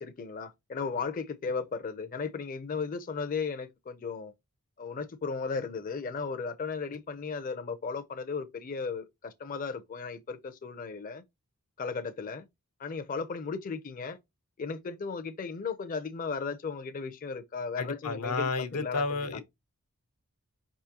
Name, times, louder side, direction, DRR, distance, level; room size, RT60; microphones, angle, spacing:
voice 1, 0.0-4.3 4.8-11.2 11.8-12.5 12.8-14.2 14.6-19.4, left 5 dB, 40° left, 0.4 m, -35 dB
voice 2, 17.8-19.4, left 3 dB, 90° left, 0.8 m, -31 dB
5.1 x 3.6 x 2.8 m
head